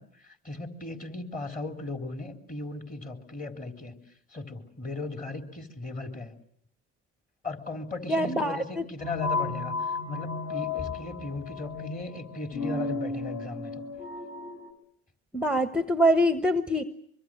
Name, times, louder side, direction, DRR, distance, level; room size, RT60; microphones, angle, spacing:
voice 1, 0.0-4.0 4.3-6.3 7.4-13.8, left 2 dB, 25° left, 5 dB, 3.7 m, -37 dB
voice 2, 8.1-8.6 15.3-16.8, equal, 5° right, 11 dB, 1.1 m, -24 dB
sound 1, 9.0-14.7, left 4 dB, 45° left, 6.5 m, -33 dB
24.5 x 23.5 x 7.7 m, 0.67 s
supercardioid pair, 85°, 33 cm